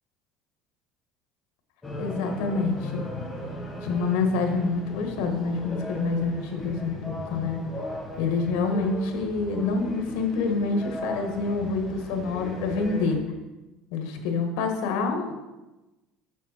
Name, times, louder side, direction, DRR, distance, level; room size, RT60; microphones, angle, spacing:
sound 1, 1.8-13.2, left 1 dB, 10° left, 1.3 m, -37 dB
voice 1, 2.0-3.0 3.8-7.6 8.2-13.2 13.9-15.3, left 4 dB, 85° left, 4 dB, 1.4 m, -27 dB
7.3 x 6.4 x 4.3 m, 1.1 s
cardioid pair, 170°, 0 cm